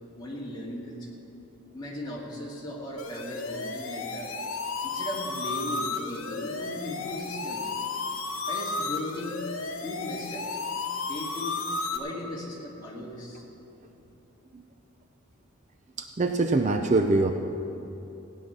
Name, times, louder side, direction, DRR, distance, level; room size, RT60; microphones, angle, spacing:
voice 1, 0.2-1.1 1.7-4.3 4.8-7.7 8.5-9.4 9.8-10.5 11.0-11.6 11.9-13.4, left 1 dB, 20° left, -5 dB, 2.3 m, -37 dB
sound 1, 3.0-12.0, left 3 dB, 70° left, 1.1 m, -33 dB
voice 2, 16.0-17.3, right 2 dB, 35° right, 5 dB, 0.5 m, -24 dB
16.0 x 10.0 x 6.1 m, 2.9 s
head